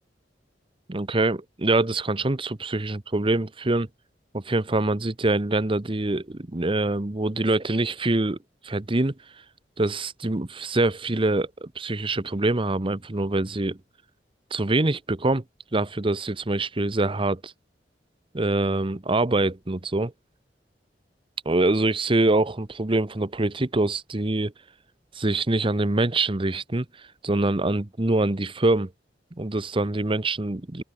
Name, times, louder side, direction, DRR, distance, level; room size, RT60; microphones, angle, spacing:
voice 1, 0.9-3.9 4.3-8.4 8.6-9.1 9.8-13.8 14.5-15.4 15.7-17.5 18.3-20.1 21.4-24.5 25.1-26.9 27.2-28.9 29.4-30.8, right 2 dB, 30° right, 1.0 m, -24 dB
open air
head